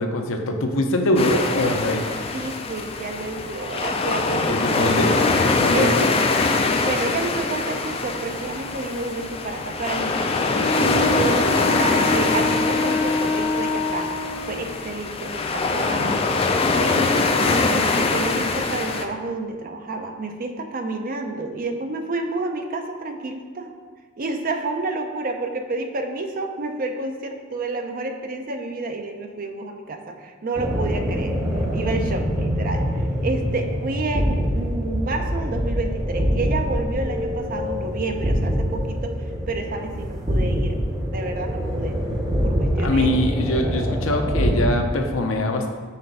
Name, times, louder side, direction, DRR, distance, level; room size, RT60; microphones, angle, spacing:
voice 1, 0.0-2.0 4.3-5.1 5.4-6.1 42.8-45.7, left 1 dB, 75° left, 4 dB, 0.7 m, -23 dB
sound 1, 1.2-19.0, left 3 dB, 30° left, 0.4 m, -23 dB
voice 2, 2.3-6.1 6.8-10.3 10.8-14.1 14.5-16.3 16.8-23.7 24.2-31.4 31.7-39.1 39.5-40.8 41.1-42.0 42.4-43.2, right 2 dB, 45° right, 5 dB, 0.5 m, -30 dB
Wind instrument woodwind instrument, 10.5-14.6, left 2 dB, 90° left, 1.0 m, -26 dB
sound 2, 30.6-44.7, equal, 20° right, 0.8 m, -24 dB
5.7 x 3.4 x 5.3 m, 1.5 s
head